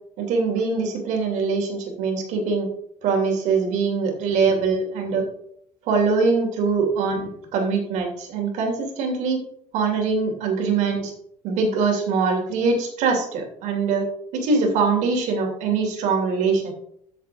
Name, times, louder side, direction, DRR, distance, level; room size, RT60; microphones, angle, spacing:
voice 1, 0.2-2.7 3.0-5.2 5.9-9.4 9.7-11.1 11.4-14.1 14.3-16.7, right 4 dB, 65° right, 2 dB, 3.0 m, -23 dB
14.0 x 7.3 x 3.5 m, 0.70 s
cardioid pair, 160°, 13 cm